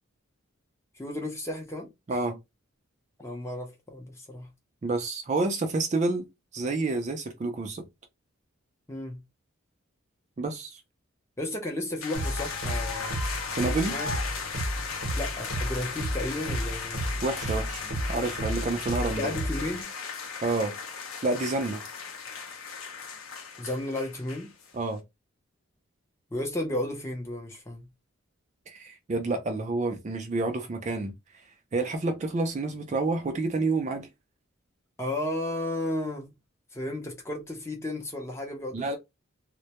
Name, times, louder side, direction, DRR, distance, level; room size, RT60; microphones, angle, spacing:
voice 1, 0.9-2.2 3.2-4.5 8.9-9.2 11.4-13.3 13.9-14.1 15.1-17.2 19.1-19.9 23.6-24.5 26.3-27.9 35.0-36.3 36.7-39.0, left 1 dB, 15° left, 0.5 m, -33 dB
voice 2, 4.8-6.2 6.5-7.9 10.4-10.8 13.6-14.0 17.2-17.8 18.1-19.3 20.4-20.7 21.2-21.8 24.7-25.0 28.7-31.1 31.7-34.1 38.7-39.0, right 3 dB, 35° right, 0.3 m, -29 dB
sound 1, 12.0-24.7, left 5 dB, 80° left, 0.7 m, -36 dB
sound 2, 12.1-19.8, right 1 dB, 75° right, 0.7 m, -33 dB
2.1 x 2.1 x 2.8 m
head